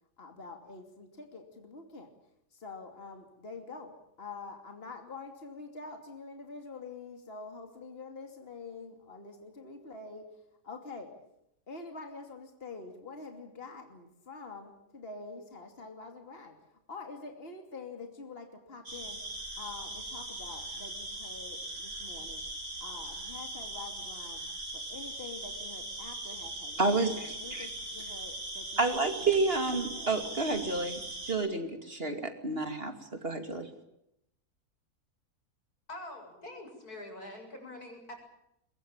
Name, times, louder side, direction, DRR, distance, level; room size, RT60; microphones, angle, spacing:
voice 1, 0.2-2.1 2.5-10.3 10.6-11.1 11.7-16.6 16.9-19.2 19.6-22.5 22.8-24.4 24.7-29.4 29.9-30.9, left 4 dB, 40° left, 5 dB, 3.0 m, -46 dB
sound 1, 18.9-31.3, right 2 dB, 75° right, 6.5 m, -40 dB
voice 2, 26.8-27.7 28.8-31.0 31.2-32.9 33.2-33.7, right 3 dB, 40° right, 7 dB, 2.8 m, -30 dB
voice 3, 35.9-38.1, left 1 dB, 80° left, 3 dB, 7.9 m, -45 dB
23.0 x 22.0 x 8.8 m, 0.80 s
omnidirectional pair, 1.6 m